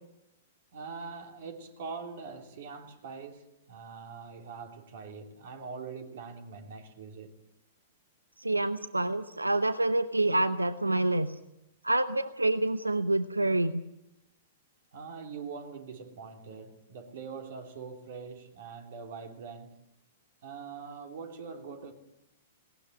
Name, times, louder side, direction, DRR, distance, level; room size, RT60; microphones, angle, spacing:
voice 1, 0.7-7.3 14.9-19.8 20.4-21.9, right 5 dB, 55° right, 3.4 m, -43 dB
voice 2, 8.4-11.3 11.8-13.8, right 2 dB, 90° right, 0.8 m, -27 dB
19.0 x 18.5 x 9.6 m
figure-of-eight pair, 105°, 0 cm